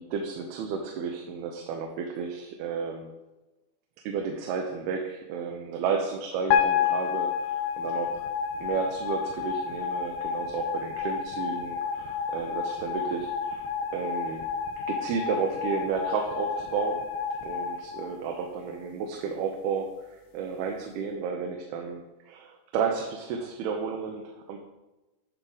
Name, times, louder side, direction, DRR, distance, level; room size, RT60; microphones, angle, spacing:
voice 1, 0.0-3.1 4.1-8.2 8.6-13.6 13.9-14.4 14.9-17.0 17.4-24.6, right 6 dB, 85° right, 2 dB, 2.7 m, -32 dB
sound 1, 6.5-18.8, left 7 dB, 80° left, 2.6 m, -30 dB
10.0 x 5.6 x 3.9 m, 1.0 s
omnidirectional pair, 4.5 m